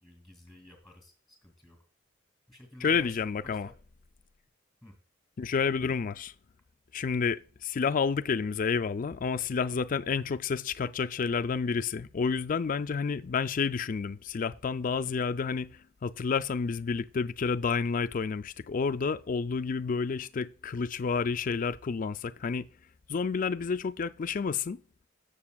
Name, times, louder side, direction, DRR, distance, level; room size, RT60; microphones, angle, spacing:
voice 1, 0.0-1.8 2.5-3.8 4.8-5.0, left 1 dB, ahead, 2.3 m, -52 dB
voice 2, 2.8-3.7 5.4-6.3 6.9-22.7 23.1-24.8, left 5 dB, 40° left, 0.4 m, -30 dB
14.5 x 6.8 x 2.3 m
head